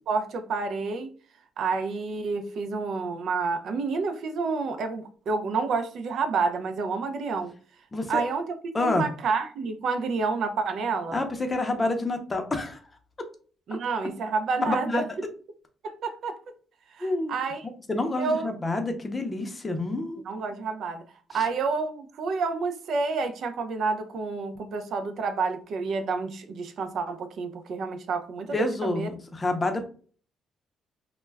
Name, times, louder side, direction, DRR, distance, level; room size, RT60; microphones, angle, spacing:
voice 1, 0.1-1.1 1.6-7.5 8.1-11.2 13.7-15.0 15.8-16.4 16.9-17.7 18.2-18.5 20.2-21.0 21.3-29.1, right 4 dB, 65° right, 7 dB, 0.4 m, -29 dB
voice 2, 7.9-8.2 8.7-9.1 11.1-12.8 14.7-15.1 17.0-17.4 17.9-20.2 28.5-29.8, left 2 dB, 25° left, 5 dB, 0.6 m, -28 dB
2.2 x 2.1 x 3.3 m, 0.42 s
cardioid pair, 90°, 0 cm